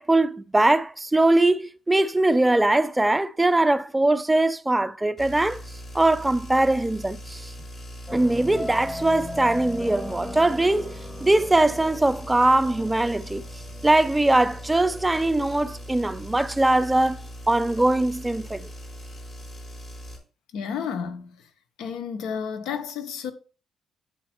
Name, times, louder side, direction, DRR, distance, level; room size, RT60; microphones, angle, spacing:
voice 1, 0.0-5.6 5.9-7.5 8.1-10.9 11.2-13.4 13.8-18.7, right 2 dB, 10° right, 0.4 m, -21 dB
sound 1, 5.2-20.2, equal, 40° left, 3.4 m, -40 dB
sound 2, 8.1-16.1, left 1 dB, 10° left, 2.1 m, -39 dB
voice 2, 20.5-21.4 21.8-23.3, left 7 dB, 85° left, 1.0 m, -31 dB
8.5 x 4.2 x 4.4 m
cardioid pair, 90°, 0 cm